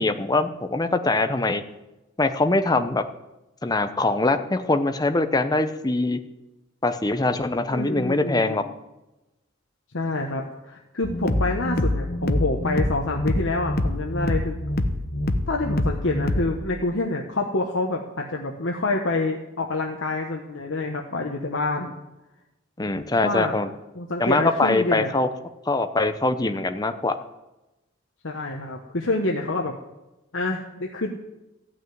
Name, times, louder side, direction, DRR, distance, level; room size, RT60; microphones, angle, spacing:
voice 1, 0.0-1.6 2.2-3.0 3.6-6.2 6.8-8.7 22.8-23.7 24.2-25.3 25.7-27.1, left 2 dB, 20° left, 9 dB, 0.7 m, -23 dB
voice 2, 7.7-8.7 9.9-14.6 15.5-21.9 23.2-23.5 23.9-25.1 28.2-29.7 30.3-31.2, left 2 dB, 75° left, 1 dB, 1.2 m, -27 dB
sound 1, 11.0-16.6, left 1 dB, 50° left, 1.0 m, -26 dB
14.5 x 6.2 x 9.3 m, 1.0 s
head